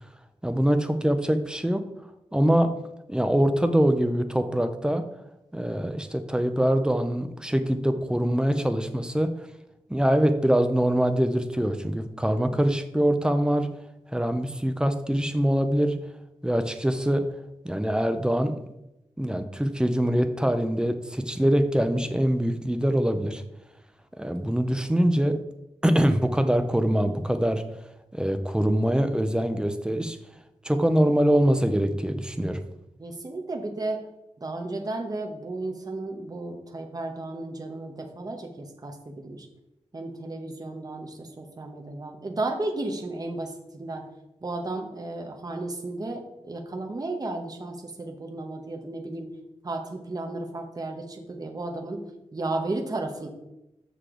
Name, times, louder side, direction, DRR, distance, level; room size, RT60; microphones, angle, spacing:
voice 1, 0.4-1.9 2.3-2.7 3.1-5.1 5.5-9.3 9.9-13.7 14.1-16.0 16.4-17.3 17.6-18.6 19.2-23.4 24.2-25.4 25.8-27.6 28.1-30.2 30.6-32.6, equal, 5° right, 8 dB, 0.6 m, -23 dB
voice 2, 33.0-34.0 34.4-39.5 39.9-44.1 44.4-49.3 49.6-52.0 52.3-53.3, right 2 dB, 35° right, 2 dB, 1.0 m, -33 dB
6.8 x 6.6 x 3.8 m, 0.90 s
wide cardioid pair, 120°, 12 cm